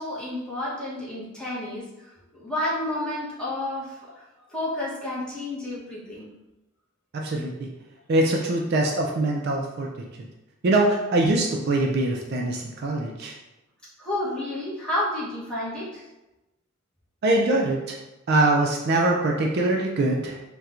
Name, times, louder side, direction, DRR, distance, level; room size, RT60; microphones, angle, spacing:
voice 1, 0.0-4.2 4.5-6.3 14.0-16.0, left 1 dB, 5° left, -9 dB, 0.9 m, -31 dB
voice 2, 7.1-7.7 8.1-10.1 10.6-13.4 17.2-18.0 18.3-20.4, right 2 dB, 50° right, 0 dB, 0.4 m, -23 dB
4.2 x 2.2 x 2.4 m, 0.98 s
head